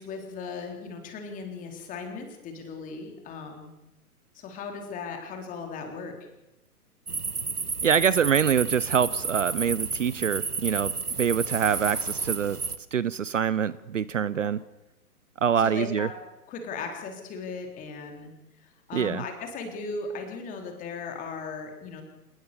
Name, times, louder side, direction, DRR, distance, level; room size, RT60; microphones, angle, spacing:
voice 1, 0.0-3.7 4.3-6.1 15.6-16.2 16.5-18.3 18.6-22.0, left 4 dB, 15° left, 4 dB, 3.8 m, -37 dB
sound 1, 7.1-12.8, right 4 dB, 80° right, 1.8 m, -31 dB
voice 2, 7.8-12.6 12.9-14.6 15.4-16.1 18.9-19.2, right 8 dB, 55° right, 18 dB, 0.9 m, -25 dB
27.0 x 19.0 x 7.0 m, 0.98 s
figure-of-eight pair, 125°, 46 cm